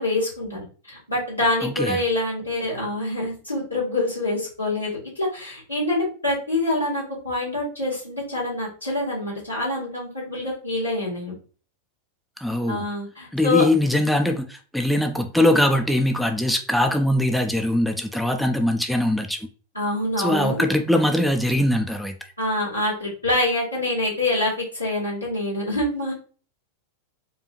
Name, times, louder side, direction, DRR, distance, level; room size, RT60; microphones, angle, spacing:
voice 1, 0.0-11.3 12.7-13.6 19.7-20.6 22.4-26.1, left 2 dB, 85° left, 2.0 m, -26 dB
voice 2, 1.6-2.0 12.4-12.8 13.3-19.4 20.2-22.1, left 1 dB, ahead, 0.4 m, -21 dB
4.6 x 2.4 x 3.0 m
figure-of-eight pair, 90°, 0 cm